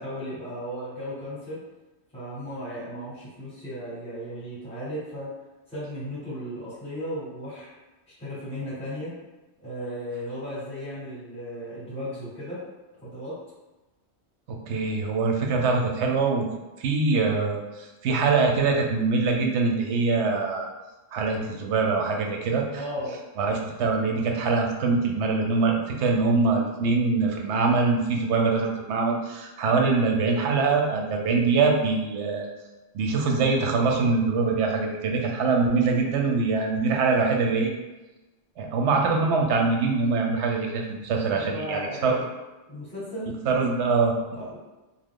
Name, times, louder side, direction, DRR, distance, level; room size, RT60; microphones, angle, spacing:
voice 1, 0.0-1.6 2.1-5.3 5.7-7.7 8.2-9.1 9.6-12.6 13.0-13.4 22.7-23.2 41.3-42.2 42.7-43.3 44.3-44.6, equal, 5° left, -10 dB, 1.0 m, -35 dB
voice 2, 14.5-16.5 16.8-20.7 21.1-22.8 23.4-32.5 32.9-37.7 38.6-42.1 43.5-44.1, right 4 dB, 85° right, 1 dB, 0.9 m, -23 dB
3.0 x 2.0 x 3.6 m, 1.1 s
omnidirectional pair, 1.1 m